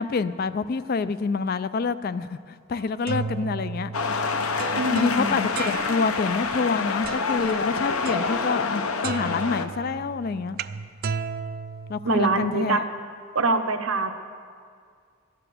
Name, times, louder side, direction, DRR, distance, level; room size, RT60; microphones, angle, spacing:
voice 1, 0.0-3.9 4.9-10.6 11.9-12.8, left 4 dB, 45° left, 14 dB, 0.3 m, -27 dB
sound 1, 2.8-6.3 7.0-7.5 8.1-8.8 9.0-12.5, right 5 dB, 45° right, 0.3 m, -35 dB
sound 2, 3.9-9.7, left 4 dB, 80° left, 0.8 m, -27 dB
voice 2, 4.8-5.5 12.0-12.8 13.3-14.1, right 3 dB, 75° right, 7 dB, 0.9 m, -24 dB
13.0 x 9.9 x 6.8 m, 2.1 s
head